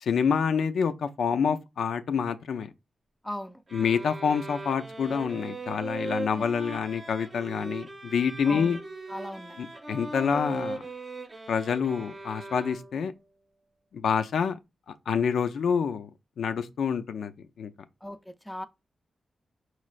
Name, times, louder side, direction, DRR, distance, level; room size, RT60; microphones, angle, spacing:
voice 1, 0.0-2.7 3.7-8.8 9.6-10.8 11.5-13.1 13.9-14.6 15.1-16.1 16.4-17.3 17.6-17.7, left 6 dB, 85° left, 0.4 m, -27 dB
voice 2, 3.2-3.6 8.5-8.8 9.1-9.6 18.0-18.7, left 1 dB, 5° left, 0.5 m, -37 dB
sound 1, 3.7-13.1, right 2 dB, 30° right, 0.7 m, -39 dB
5.4 x 3.2 x 2.4 m
wide cardioid pair, 115°, 0 cm